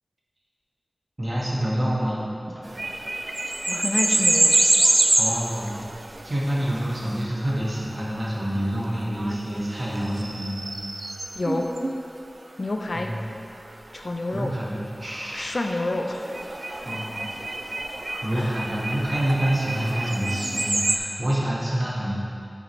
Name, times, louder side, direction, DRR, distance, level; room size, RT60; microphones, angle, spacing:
voice 1, 1.2-2.3 5.2-5.8 6.2-10.6 12.9-13.2 14.3-15.6 16.8-17.2 18.2-22.1, right 1 dB, 35° right, -6 dB, 1.5 m, -27 dB
sound 1, 2.7-11.9 16.2-21.0, right 2 dB, 55° right, 0.4 m, -26 dB
voice 2, 3.7-4.5 11.4-11.7 12.6-13.1 13.9-14.5 15.3-16.3 18.3-18.5, left 2 dB, 60° left, 3 dB, 0.5 m, -28 dB
7.5 x 4.9 x 3.1 m, 2.9 s
cardioid pair, 40°, 0 cm